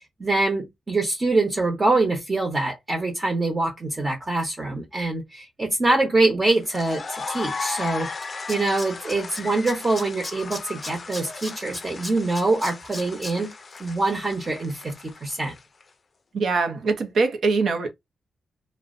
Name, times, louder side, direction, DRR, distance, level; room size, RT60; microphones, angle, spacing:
voice 1, 0.2-8.1 8.5-13.5 13.8-14.9 15.2-15.5, right 2 dB, 30° right, 0.8 m, -24 dB
sound 1, 6.5-15.8, left 4 dB, 45° left, 0.4 m, -37 dB
Tools, 7.9-8.0 8.2-9.4 9.7-13.3 13.7-13.8, left 2 dB, 10° left, 0.8 m, -35 dB
voice 2, 16.3-17.9, right 4 dB, 70° right, 0.6 m, -23 dB
2.5 x 2.1 x 2.4 m
cardioid pair, 90°, 0 cm